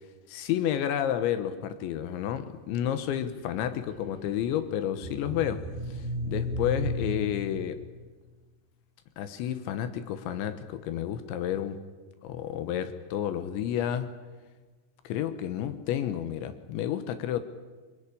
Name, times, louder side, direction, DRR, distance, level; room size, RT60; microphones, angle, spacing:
voice 1, 0.3-5.6 5.9-7.8 9.2-11.8 12.2-14.1 15.1-17.4, left 10 dB, 85° left, 10 dB, 3.5 m, -30 dB
sound 1, 3.0-8.1, equal, 60° right, 3.8 m, -36 dB
24.0 x 20.0 x 10.0 m, 1.3 s
omnidirectional pair, 5.2 m